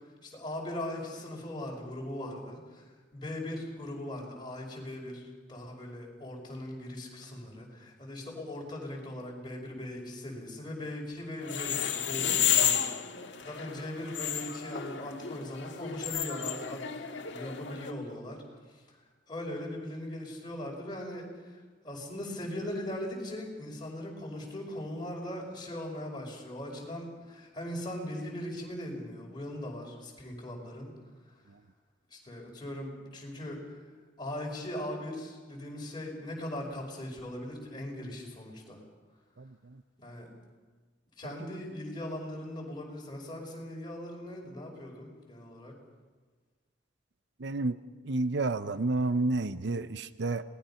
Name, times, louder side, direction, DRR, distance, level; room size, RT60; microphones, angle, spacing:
voice 1, 0.2-2.8 3.1-12.9 13.4-18.4 18.9-19.0 19.3-30.9 32.1-33.6 34.2-38.8 40.0-40.3 41.2-45.7, left 1 dB, 25° left, -1 dB, 5.3 m, -39 dB
sound 1, 11.4-17.9, left 9 dB, 75° left, 1.7 m, -32 dB
voice 2, 47.4-47.8 48.0-50.4, right 2 dB, 65° right, 13 dB, 0.7 m, -30 dB
27.5 x 19.5 x 5.7 m, 1.4 s
head